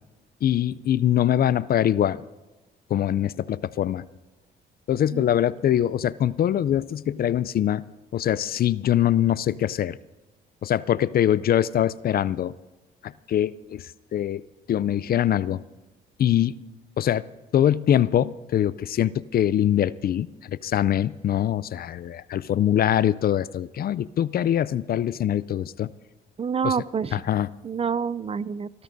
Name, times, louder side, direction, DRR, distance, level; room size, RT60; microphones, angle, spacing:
voice 1, 0.4-2.2 2.9-4.1 4.9-7.8 8.1-10.0 10.6-12.5 13.0-13.8 14.1-14.4 14.7-15.6 16.2-16.7 17.0-17.3 17.5-25.9 26.6-26.8 27.1-27.5, left 11 dB, 50° left, 18 dB, 0.4 m, -23 dB
voice 2, 26.4-27.2 27.6-28.7, right 6 dB, 30° right, 18 dB, 0.4 m, -27 dB
29.0 x 12.5 x 2.6 m, 1.1 s
cardioid pair, 90°, 20 cm